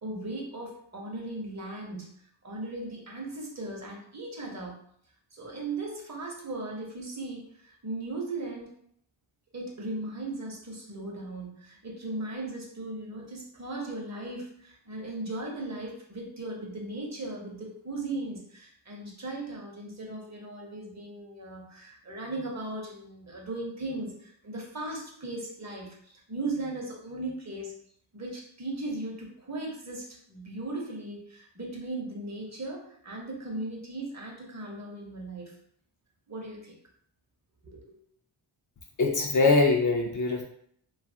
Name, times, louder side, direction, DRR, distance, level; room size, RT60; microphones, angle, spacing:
voice 1, 0.0-2.1 2.4-4.8 5.3-8.7 9.5-27.7 28.1-35.5 36.3-36.7 37.6-38.0, right 2 dB, 35° right, -1 dB, 0.8 m, -37 dB
voice 2, 39.0-40.4, left 3 dB, 40° left, 0 dB, 0.5 m, -23 dB
2.6 x 2.4 x 2.7 m, 0.66 s
cardioid pair, 80°, 48 cm